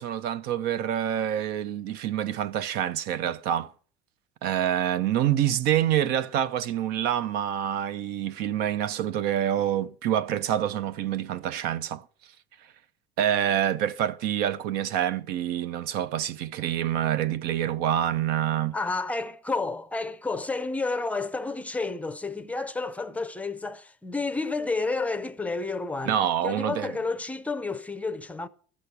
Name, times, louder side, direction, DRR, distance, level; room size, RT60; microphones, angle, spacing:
voice 1, 0.0-3.7 4.4-12.0 13.2-18.8 26.1-26.9, right 10 dB, 65° right, 0.8 m, -27 dB
voice 2, 18.7-26.2 26.4-28.5, left 3 dB, 10° left, 0.6 m, -30 dB
13.5 x 6.4 x 8.3 m
cardioid pair, 155°, 18 cm